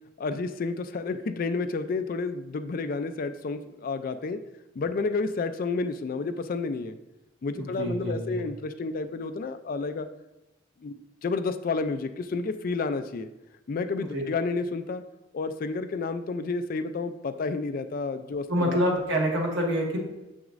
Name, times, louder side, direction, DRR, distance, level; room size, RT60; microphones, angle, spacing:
voice 1, 0.2-4.4 4.8-7.0 7.4-10.1 10.8-13.3 13.7-15.0 15.3-18.8, left 4 dB, 45° left, 10 dB, 0.3 m, -30 dB
voice 2, 7.8-8.4 14.1-14.2 18.5-20.0, equal, 70° right, 0 dB, 1.4 m, -26 dB
7.1 x 6.1 x 2.5 m, 0.98 s
head